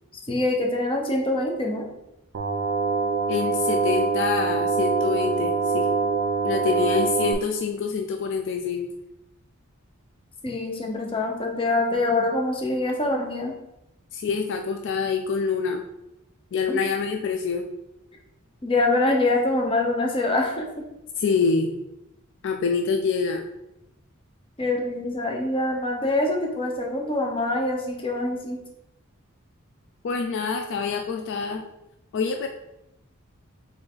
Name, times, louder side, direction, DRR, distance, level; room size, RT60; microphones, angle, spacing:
voice 1, 0.3-1.9 10.4-13.6 16.7-16.8 18.6-20.7 24.6-28.6, left 2 dB, 25° left, 1 dB, 0.8 m, -24 dB
sound 1, 2.3-7.3, right 4 dB, 60° right, 0.5 m, -24 dB
voice 2, 3.3-5.9 6.4-8.9 14.1-15.8 16.5-17.7 21.2-21.7 22.4-23.5 30.0-31.6 32.1-32.5, left 5 dB, 60° left, 4 dB, 0.4 m, -26 dB
4.0 x 3.3 x 3.8 m, 0.88 s
head